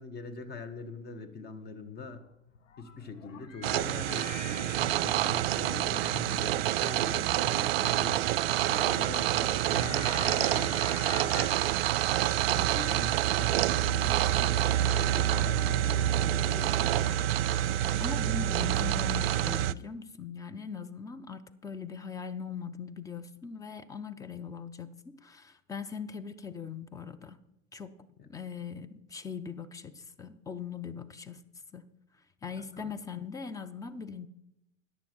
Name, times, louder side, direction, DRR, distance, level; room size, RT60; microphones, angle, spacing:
voice 1, 0.0-2.2 2.8-8.2 8.6-10.8 11.2-11.7 12.5-14.6 14.9-16.8 32.6-32.9, left 4 dB, 25° left, 10 dB, 1.4 m, -42 dB
sound 1, 2.2-13.6, left 7 dB, 70° left, 1.2 m, -46 dB
sound 2, 3.6-19.7, right 13 dB, 50° right, 0.4 m, -27 dB
sound 3, 7.9-18.3, right 4 dB, 15° right, 4.4 m, -56 dB
voice 2, 18.0-27.4 27.7-28.0 28.3-31.4 31.7-31.9 32.4-34.3, left 6 dB, 10° left, 11 dB, 0.5 m, -40 dB
14.0 x 10.0 x 4.5 m, 0.85 s
figure-of-eight pair, 95°, 39 cm